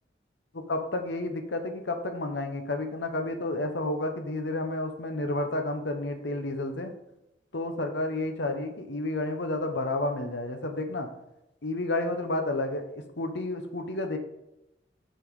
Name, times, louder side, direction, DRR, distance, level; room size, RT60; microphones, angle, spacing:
voice 1, 0.5-6.9 7.5-11.1 11.6-12.8 13.2-14.2, left 2 dB, 75° left, 6 dB, 1.0 m, -31 dB
5.9 x 5.3 x 4.8 m, 0.89 s
head